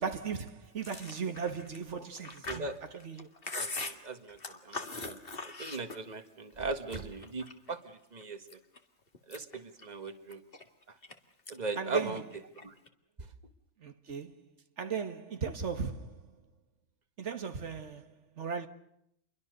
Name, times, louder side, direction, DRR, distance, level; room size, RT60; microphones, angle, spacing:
voice 1, 0.0-3.3 3.9-4.0 11.8-12.2 13.8-14.4 14.8-16.3 17.2-18.7, right 6 dB, 75° right, 1.7 m, -37 dB
Chewing mastication, 0.8-6.3 6.6-7.7 8.2-8.8 9.1-11.1 11.5-11.8 12.1-12.9, left 3 dB, 50° left, 2.3 m, -41 dB
voice 2, 2.5-2.8 3.5-4.4 4.7-5.2 5.6-8.4 9.3-10.4 11.5-12.2 12.6-12.7, right 3 dB, 35° right, 1.8 m, -38 dB
28.5 x 23.5 x 6.6 m
omnidirectional pair, 1.2 m